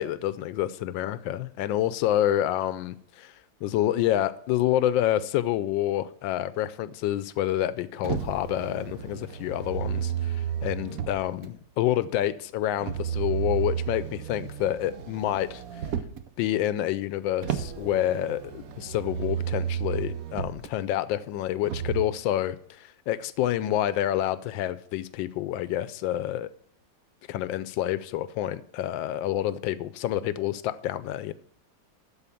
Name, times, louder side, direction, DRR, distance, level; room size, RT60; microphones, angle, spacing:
voice 1, 0.0-3.3 3.6-15.6 16.4-26.5 27.3-31.3, left 12 dB, 90° left, 1.3 m, -28 dB
Motor vehicle (road), 8.0-11.5 12.8-16.3 17.4-20.7 21.6-22.0, right 9 dB, 60° right, 1.0 m, -32 dB
13.0 x 4.4 x 6.9 m
omnidirectional pair, 2.0 m